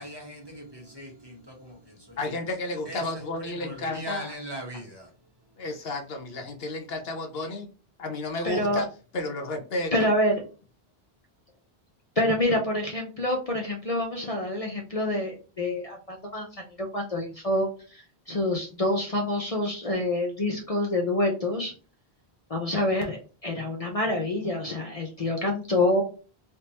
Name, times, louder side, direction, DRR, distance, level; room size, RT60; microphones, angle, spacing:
voice 1, 0.0-1.8 2.1-2.2 2.9-3.2 3.5-5.1, equal, 25° right, 1.1 m, -40 dB
voice 2, 2.2-4.4 4.7-4.8 5.6-7.7 8.0-8.9 9.1-9.9, left 2 dB, 70° left, 1.0 m, -32 dB
voice 3, 8.4-8.8 9.9-10.3 12.2-16.5 16.8-21.7 22.5-26.0, left 1 dB, 40° left, 0.7 m, -27 dB
3.4 x 2.8 x 2.8 m
omnidirectional pair, 1.0 m